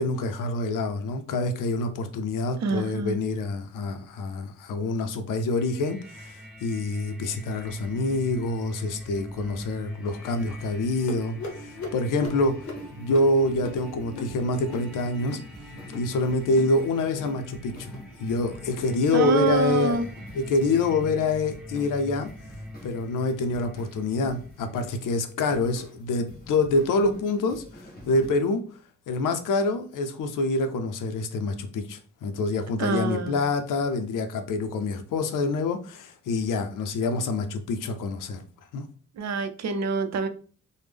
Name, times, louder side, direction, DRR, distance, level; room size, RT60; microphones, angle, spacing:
voice 1, 0.0-12.7 12.9-15.4 15.9-17.9 18.2-20.0 20.3-22.3 22.8-27.6 28.1-28.6 29.1-38.4 38.7-38.8, left 2 dB, 85° left, 7 dB, 0.5 m, -26 dB
voice 2, 2.6-3.2 19.1-20.1 32.8-33.4 39.2-40.3, right 4 dB, 60° right, 10 dB, 0.4 m, -26 dB
sound 1, 5.5-25.3, left 1 dB, 5° right, 0.6 m, -43 dB
sound 2, 11.1-16.1 16.4-16.8 17.0-17.4 17.7-18.1 18.5-18.8 19.2-19.6 20.0-20.3 20.8-21.1 21.7-21.9 22.5-22.7 23.4-23.5 24.2-24.3, left 3 dB, 65° left, 0.9 m, -41 dB
sound 3, 12.3-28.3, equal, 30° left, 1.0 m, -49 dB
3.3 x 2.1 x 3.4 m, 0.41 s
wide cardioid pair, 175°, 31 cm